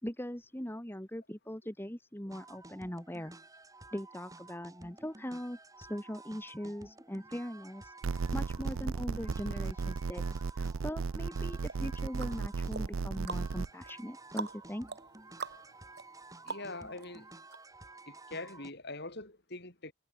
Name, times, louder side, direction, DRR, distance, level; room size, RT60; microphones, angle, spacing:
voice 1, 0.0-3.3 3.9-10.2 10.5-14.9, equal, 10° left, 1.7 m, -40 dB
sound 1, 2.3-18.7, right 2 dB, 15° right, 2.5 m, -53 dB
sound 2, 8.0-13.7, right 5 dB, 65° right, 0.5 m, -35 dB
sound 3, 11.7-17.1 17.5-17.6, right 4 dB, 50° right, 2.8 m, -45 dB
voice 2, 16.4-17.3 18.1-19.9, left 2 dB, 50° left, 4.2 m, -43 dB
head